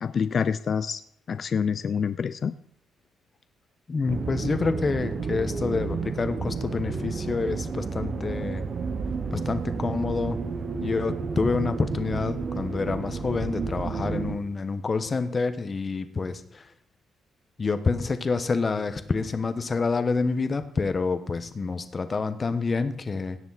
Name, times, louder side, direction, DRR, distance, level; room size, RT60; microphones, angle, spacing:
voice 1, 0.0-1.0 1.3-2.6, left 6 dB, 50° left, 13 dB, 0.4 m, -27 dB
voice 2, 3.9-8.6 9.3-10.4 10.8-16.7 17.6-23.4, left 4 dB, 35° left, 10 dB, 1.1 m, -28 dB
sound 1, 4.1-14.4, right 5 dB, 45° right, 1.0 m, -31 dB
17.0 x 7.0 x 4.1 m, 0.68 s
cardioid pair, 90°, 0 cm